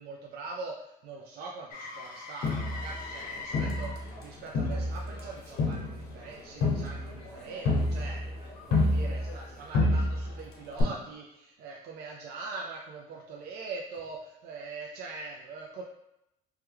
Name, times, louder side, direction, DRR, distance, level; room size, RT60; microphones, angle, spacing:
voice 1, 0.0-8.2 8.7-15.8, right 3 dB, 70° right, -1 dB, 0.4 m, -42 dB
Motor vehicle (road), 1.7-9.6 13.9-14.1, left 3 dB, 55° left, 0.6 m, -46 dB
Crowd, 2.4-4.2 4.5-9.5 9.7-10.4 10.8-10.9, left 2 dB, 75° left, 1.0 m, -29 dB
3.0 x 2.2 x 3.3 m, 0.85 s
cardioid pair, 110°, 17 cm